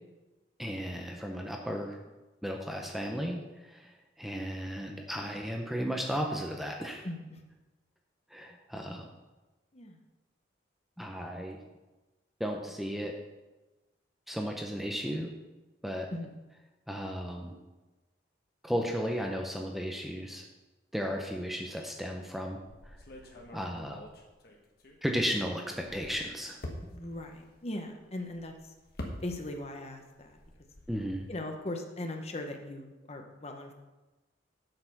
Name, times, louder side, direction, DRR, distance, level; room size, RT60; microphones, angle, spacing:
voice 1, 0.6-2.0 2.4-7.1 8.3-9.1 11.0-11.6 12.4-13.1 14.3-15.3 15.8-16.1 16.9-17.6 18.6-20.4 20.9-23.0 23.5-24.0 25.0-26.6 30.9-31.3, equal, ahead, 1 dB, 0.6 m, -34 dB
voice 2, 7.0-7.4 9.7-10.0 16.1-16.3 26.9-28.7 29.2-30.4 31.3-33.7, left 1 dB, 35° left, 4 dB, 0.9 m, -39 dB
sound 1, 22.6-25.3 25.7-29.8 30.0-31.3, left 1 dB, 55° left, 1.3 m, -46 dB
7.9 x 6.6 x 5.9 m, 1.1 s
head